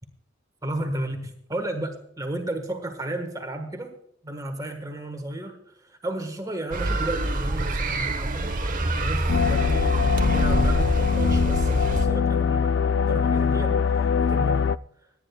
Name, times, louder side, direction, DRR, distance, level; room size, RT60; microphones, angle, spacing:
voice 1, 0.6-3.9 4.2-12.8 13.0-14.7, right 1 dB, 20° right, 5 dB, 1.3 m, -33 dB
sound 1, 6.7-12.1, right 2 dB, 45° right, 1.0 m, -26 dB
sound 2, 9.3-14.8, left 6 dB, 70° left, 0.3 m, -22 dB
25.5 x 9.8 x 2.3 m, 0.73 s
head